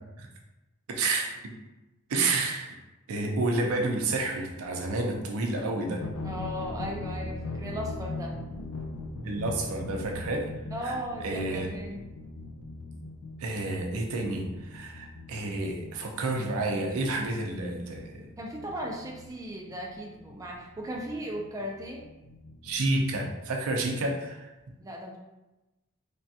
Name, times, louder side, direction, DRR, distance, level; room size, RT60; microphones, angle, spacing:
voice 1, 0.9-1.5 2.1-2.8 3.1-6.0 9.2-10.5 10.8-10.9 11.2-11.7 13.4-18.3 22.6-24.5, right 2 dB, 75° right, 2 dB, 0.5 m, -30 dB
sound 1, 6.0-23.0, left 2 dB, 65° left, 0.4 m, -41 dB
voice 2, 6.2-8.3 10.7-12.0 18.4-22.1 24.8-25.2, equal, 15° right, -1 dB, 0.3 m, -37 dB
3.3 x 2.2 x 2.7 m, 1.0 s
head